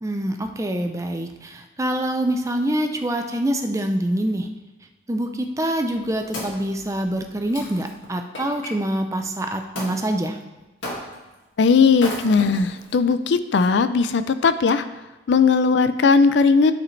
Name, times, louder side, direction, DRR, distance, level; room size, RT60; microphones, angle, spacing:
voice 1, 0.0-4.5 5.1-10.4, right 1 dB, 15° right, 5 dB, 0.5 m, -25 dB
Wood, 5.7-8.7 9.8-10.0 10.8-11.3 11.9-12.9 13.6-13.7, left 1 dB, 90° left, 1.9 m, -34 dB
voice 2, 11.6-14.8 15.3-16.7, left 5 dB, 65° left, 12 dB, 0.4 m, -18 dB
11.5 x 5.0 x 3.2 m, 1.1 s
head